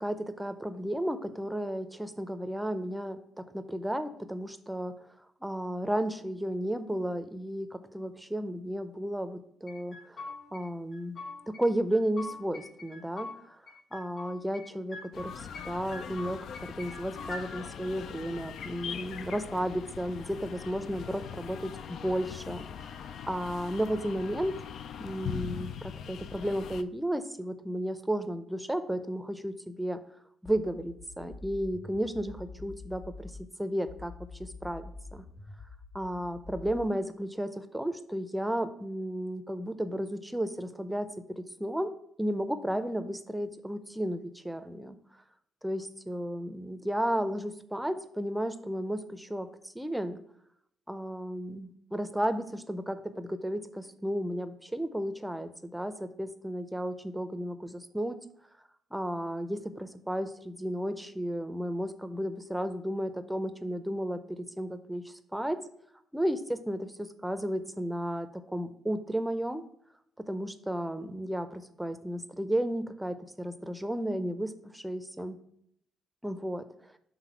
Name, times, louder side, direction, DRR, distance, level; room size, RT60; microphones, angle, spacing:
voice 1, 0.0-4.9 5.4-11.2 11.5-13.6 13.9-24.5 25.0-30.0 30.4-33.3 33.6-34.1 34.4-35.2 35.9-41.9 42.2-45.0 45.6-50.2 50.9-58.2 58.9-65.6 66.1-69.6 70.3-75.4 76.2-76.7, equal, 5° right, 10 dB, 0.6 m, -33 dB
sound 1, 9.7-10.6 10.9-11.6 11.9-13.4 13.7-14.7 14.9-15.7 15.9-17.4, left 3 dB, 50° left, 1.9 m, -43 dB
sound 2, 15.1-26.8, left 8 dB, 65° left, 0.4 m, -41 dB
sound 3, 30.4-33.5 33.9-36.9, left 3 dB, 35° left, 0.8 m, -46 dB
5.9 x 3.6 x 6.0 m, 0.72 s
cardioid pair, 100°, 0 cm